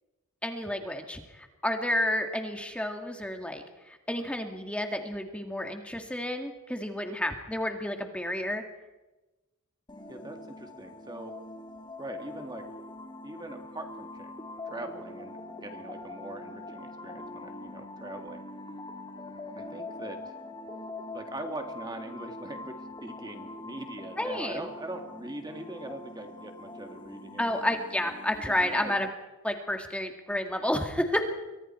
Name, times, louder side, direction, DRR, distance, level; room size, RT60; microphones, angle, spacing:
voice 1, 0.4-8.6 24.2-24.6 27.4-29.1 29.4-31.2, left 1 dB, 5° left, 4 dB, 2.0 m, -31 dB
sound 1, 9.9-29.1, left 2 dB, 20° left, 2.3 m, -43 dB
voice 2, 10.1-11.4 12.0-12.7 13.2-14.3 14.6-18.4 19.6-20.3 21.1-27.7 28.5-28.9, right 1 dB, 20° right, 5 dB, 1.9 m, -42 dB
28.5 x 24.0 x 4.4 m, 1.1 s
head